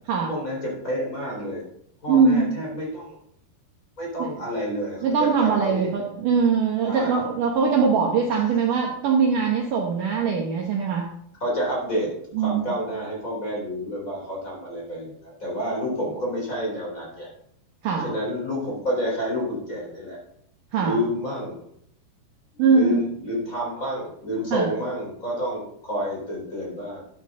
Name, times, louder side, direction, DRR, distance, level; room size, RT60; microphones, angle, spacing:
voice 1, 0.3-1.6 2.0-3.2 4.0-5.9 6.9-7.2 8.3-8.4 11.4-12.1 12.4-17.3 17.9-20.2 20.8-21.6 22.5-27.0, equal, 20° left, -3 dB, 3.9 m, -29 dB
voice 2, 2.1-2.5 4.2-4.3 5.0-11.1 12.3-12.6 17.8-18.1 20.7-21.0 22.6-23.0 24.5-24.7, right 5 dB, 65° right, 0 dB, 2.3 m, -21 dB
13.0 x 9.0 x 3.8 m, 0.72 s
omnidirectional pair, 4.8 m